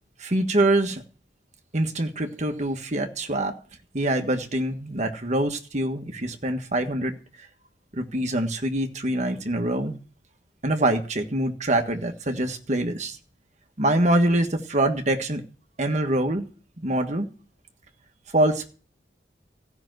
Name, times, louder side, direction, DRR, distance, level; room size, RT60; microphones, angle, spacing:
voice 1, 0.2-1.0 1.7-3.5 3.9-7.1 7.9-10.0 10.6-13.2 13.8-15.4 15.8-16.5 16.8-17.3 18.3-18.7, right 1 dB, 40° right, 1.5 m, -24 dB
15.0 x 6.0 x 7.8 m
head